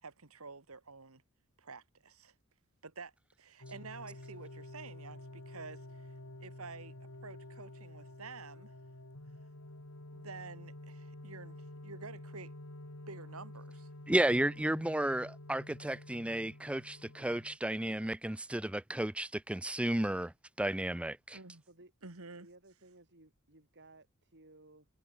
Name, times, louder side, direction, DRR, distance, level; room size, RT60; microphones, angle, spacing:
voice 1, 0.0-1.2 1.6-2.3 2.8-3.1 3.4-6.1 6.4-6.9 7.2-8.8 10.1-12.5 13.1-13.9 21.3-21.6 22.0-22.5, right 4 dB, 75° right, 2.2 m, -49 dB
sound 1, 3.6-17.6, left 1 dB, 85° left, 2.7 m, -50 dB
voice 2, 14.1-20.3 20.6-21.4, right 1 dB, 5° right, 0.4 m, -33 dB
voice 3, 22.4-24.9, right 2 dB, 55° right, 6.6 m, -59 dB
head